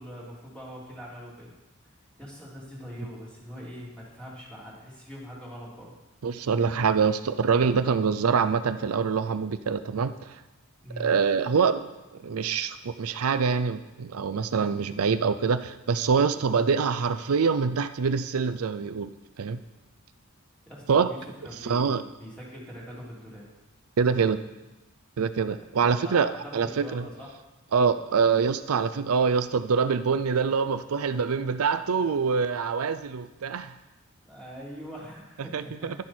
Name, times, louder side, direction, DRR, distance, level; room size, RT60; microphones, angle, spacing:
voice 1, 0.0-1.5 2.2-5.9 10.8-11.1 20.7-23.4 25.8-27.3 34.2-35.9, equal, 5° left, -6 dB, 3.2 m, -42 dB
voice 2, 6.2-10.4 11.0-19.1 19.4-19.6 20.9-21.1 21.6-22.0 24.0-24.4 25.2-27.0 27.7-33.7 35.5-35.9, right 5 dB, 85° right, 11 dB, 0.5 m, -25 dB
11.0 x 10.5 x 4.4 m, 1.1 s
head